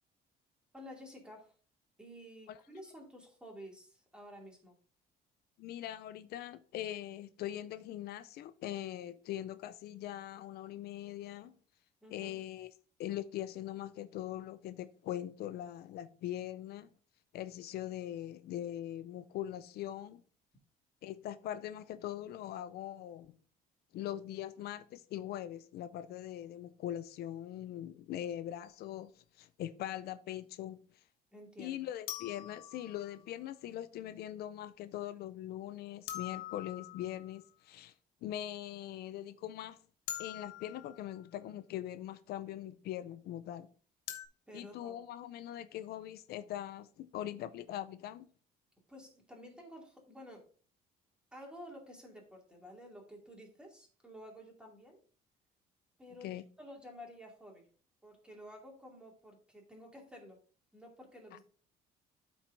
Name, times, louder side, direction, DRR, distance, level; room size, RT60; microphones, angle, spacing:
voice 1, 0.7-1.5 2.0-4.8 12.0-12.4 31.3-31.9 44.5-44.9 48.9-50.5 51.3-55.0 56.0-57.7 58.0-60.4 60.7-61.4, equal, 5° right, 2.6 m, -52 dB
voice 2, 5.6-11.5 12.1-12.7 13.0-16.9 17.3-20.2 21.0-23.3 23.9-31.0 31.6-37.9 38.2-39.8 40.2-43.7 44.5-48.3 56.2-56.4 61.3-61.4, left 12 dB, 70° left, 0.4 m, -42 dB
sound 1, 28.6-28.8 32.1-33.4 36.1-37.4 40.1-41.3 44.1-44.3, left 12 dB, 90° left, 1.1 m, -44 dB
12.5 x 4.5 x 2.6 m
cardioid pair, 110°, 17 cm